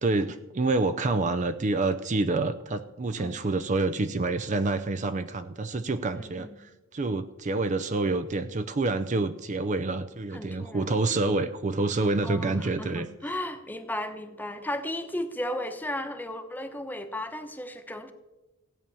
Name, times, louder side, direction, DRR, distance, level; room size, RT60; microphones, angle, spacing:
voice 1, 0.0-13.1, right 3 dB, 35° right, 11 dB, 0.5 m, -27 dB
voice 2, 6.1-6.6 10.3-10.9 12.2-18.1, left 1 dB, 10° left, 7 dB, 1.0 m, -35 dB
16.0 x 9.0 x 6.9 m, 1.1 s
head